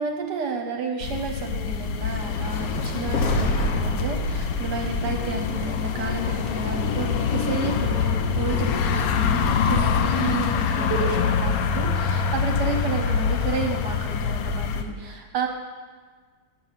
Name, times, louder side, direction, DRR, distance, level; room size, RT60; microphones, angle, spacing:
voice 1, 0.0-15.5, right 4 dB, 65° right, 3 dB, 1.3 m, -31 dB
sound 1, 1.0-14.8, left 6 dB, 80° left, 0.8 m, -25 dB
sound 2, 2.0-6.3, left 1 dB, 60° left, 1.1 m, -28 dB
sound 3, 5.6-5.7 6.0-11.2, right 2 dB, 50° right, 0.9 m, -36 dB
8.4 x 6.6 x 5.7 m, 1.5 s
omnidirectional pair, 2.2 m